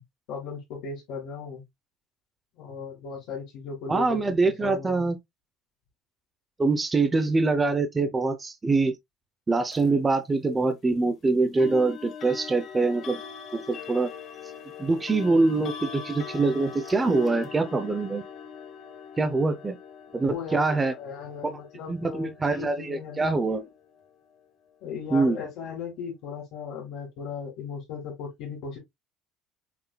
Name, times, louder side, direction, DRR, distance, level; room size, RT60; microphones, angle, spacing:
voice 1, 0.3-1.6 2.6-5.1 20.2-23.7 24.8-28.8, left 6 dB, 65° left, 2.1 m, -37 dB
voice 2, 3.9-5.2 6.6-8.9 9.5-13.2 13.5-14.1 14.8-18.2 19.2-19.8 20.1-20.9 21.4-21.5 21.9-23.6 25.1-25.4, right 3 dB, 15° right, 0.5 m, -24 dB
sound 1, 9.7-9.9 11.6-24.4, left 7 dB, 35° left, 0.8 m, -42 dB
5.7 x 3.6 x 2.2 m
cardioid pair, 175°, 0 cm